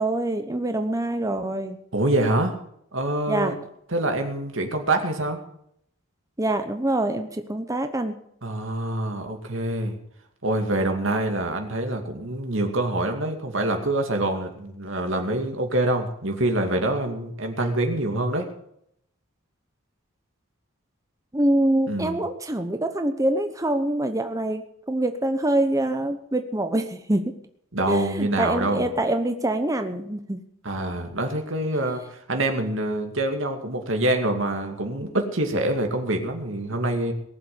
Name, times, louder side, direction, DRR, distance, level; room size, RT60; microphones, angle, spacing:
voice 1, 0.0-1.8 3.3-3.5 6.4-8.2 21.3-27.3 27.9-30.4, right 1 dB, 15° right, 7 dB, 0.9 m, -25 dB
voice 2, 1.9-2.5 2.9-3.6 3.9-5.4 8.4-10.0 10.4-18.5 21.9-22.2 27.7-28.9 30.6-32.0 32.3-37.1, right 1 dB, 65° right, 4 dB, 2.4 m, -25 dB
18.5 x 7.7 x 7.8 m, 0.72 s
head